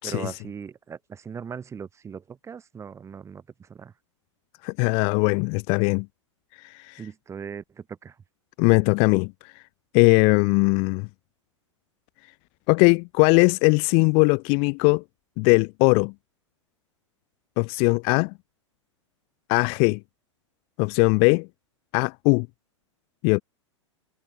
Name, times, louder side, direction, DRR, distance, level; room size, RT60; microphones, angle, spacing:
voice 1, 0.0-3.9 7.0-8.2, right 6 dB, 15° right, 5.2 m, -39 dB
voice 2, 4.6-6.1 6.6-7.0 8.6-9.5 9.9-11.1 12.7-15.0 15.4-16.1 17.6-18.3 19.5-20.0 20.8-21.5 21.9-22.5 23.2-23.4, left 37 dB, 35° left, 0.7 m, -20 dB
figure-of-eight pair, 100°, 16 cm